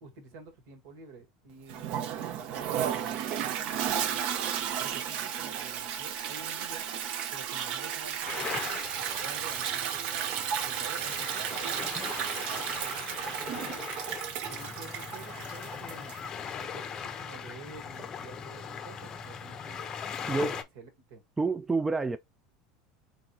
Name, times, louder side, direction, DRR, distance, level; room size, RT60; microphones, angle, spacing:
voice 1, 0.0-4.3 4.8-6.9 7.3-8.8 9.2-14.0 14.5-16.2 16.6-19.9 20.3-20.5 20.8-21.2, right 4 dB, 70° right, 1.7 m, -49 dB
Toilet flush, 1.7-16.3, right 9 dB, 50° right, 0.7 m, -33 dB
sound 1, 8.3-20.6, left 7 dB, 25° left, 0.6 m, -40 dB
voice 2, 21.4-22.2, right 3 dB, 10° right, 0.3 m, -28 dB
3.9 x 3.4 x 2.9 m
supercardioid pair, 145°, 2 cm